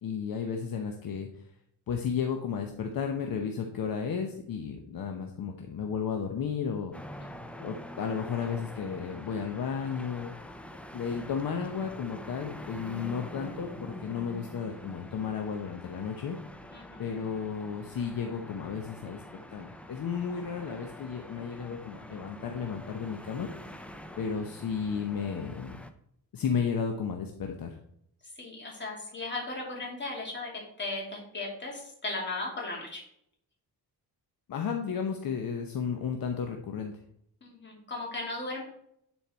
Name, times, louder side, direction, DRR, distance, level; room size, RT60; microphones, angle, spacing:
voice 1, 0.0-1.5 1.9-6.9 7.6-10.3 10.9-16.4 17.0-23.5 24.2-25.8 26.3-27.8 34.5-36.9, left 6 dB, 60° left, 3 dB, 0.9 m, -33 dB
sound 1, 6.9-25.9, equal, 5° left, 0.4 m, -45 dB
voice 2, 16.7-17.0 28.4-33.0 37.4-38.6, left 2 dB, 30° left, -2 dB, 2.7 m, -37 dB
10.5 x 4.5 x 4.3 m, 0.72 s
wide cardioid pair, 155°, 39 cm